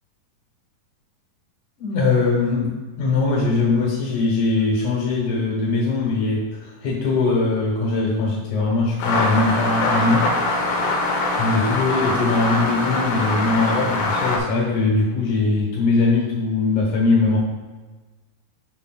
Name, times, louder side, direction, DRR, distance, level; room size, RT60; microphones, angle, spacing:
voice 1, 1.8-10.3 11.4-17.4, left 3 dB, 60° left, -4 dB, 2.5 m, -21 dB
sound 1, 9.0-14.4, left 2 dB, 90° left, 3.3 m, -23 dB
12.0 x 5.3 x 2.4 m, 1.3 s
omnidirectional pair, 4.6 m